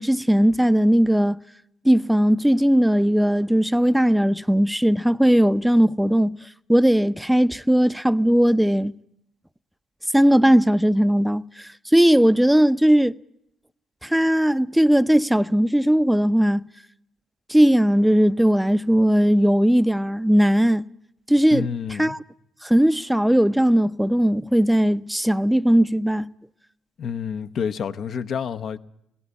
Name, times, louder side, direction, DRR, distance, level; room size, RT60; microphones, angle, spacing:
voice 1, 0.0-1.4 1.8-6.3 6.7-8.9 10.1-13.1 14.0-16.6 17.5-20.8 21.3-21.7 22.0-22.2 22.6-26.3, equal, 5° right, 0.7 m, -18 dB
voice 2, 21.5-22.2 27.0-28.8, left 7 dB, 60° left, 1.0 m, -28 dB
18.0 x 17.5 x 8.3 m
hypercardioid pair, 50°, 0 cm